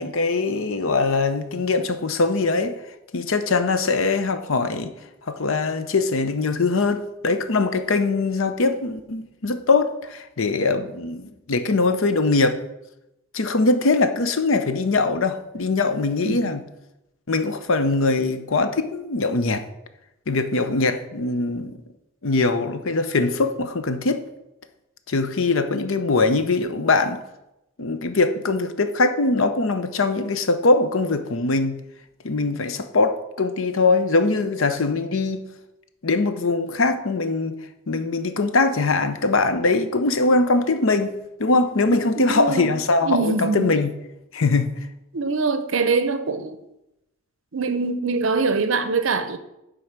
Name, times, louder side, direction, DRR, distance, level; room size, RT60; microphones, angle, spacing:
voice 1, 0.0-2.8 3.1-4.9 5.3-12.6 13.3-16.6 17.3-19.6 20.3-21.8 22.2-24.3 25.1-27.2 27.8-31.8 32.2-35.4 36.0-37.6 37.9-43.9 44.3-44.8, left 3 dB, 70° left, 0.7 m, -22 dB
voice 2, 41.9-42.7 43.0-43.7 45.1-46.6 47.5-49.4, right 4 dB, 65° right, 0.7 m, -23 dB
9.5 x 3.9 x 5.9 m
head